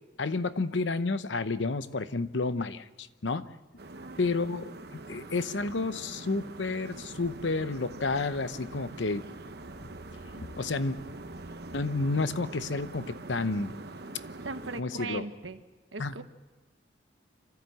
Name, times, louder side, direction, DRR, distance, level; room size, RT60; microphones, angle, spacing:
voice 1, 0.2-3.5 4.2-4.7 5.1-9.2 9.8-9.9 10.4-11.0 11.7-13.7 14.8-15.2 16.0-16.1, left 3 dB, 75° left, 13 dB, 0.8 m, -30 dB
sound 1, 3.8-14.8, right 2 dB, 55° right, 1.0 m, -44 dB
voice 2, 3.9-4.2 4.5-4.6 14.4-15.6 15.9-16.2, right 3 dB, 85° right, 9 dB, 1.3 m, -39 dB
26.0 x 14.0 x 7.8 m, 1.2 s
head